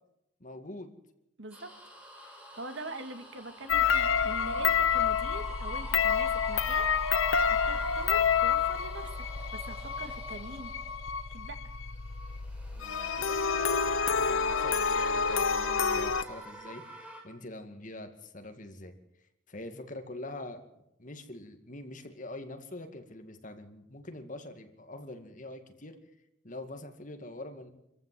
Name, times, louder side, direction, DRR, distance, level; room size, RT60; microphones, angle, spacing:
voice 1, 0.4-0.9 12.7-18.9 19.5-20.6 21.0-26.0 26.4-27.7, left 2 dB, 40° left, 6 dB, 2.2 m, -44 dB
voice 2, 1.4-1.7 2.2-9.2 9.5-10.7 11.3-11.6, right 2 dB, 65° right, 8 dB, 2.1 m, -43 dB
sound 1, 1.5-11.4 12.0-17.2, right 1 dB, 5° right, 4.4 m, -45 dB
sound 2, 3.7-16.2, left 6 dB, 85° left, 0.9 m, -28 dB
26.0 x 15.0 x 7.7 m, 0.84 s
head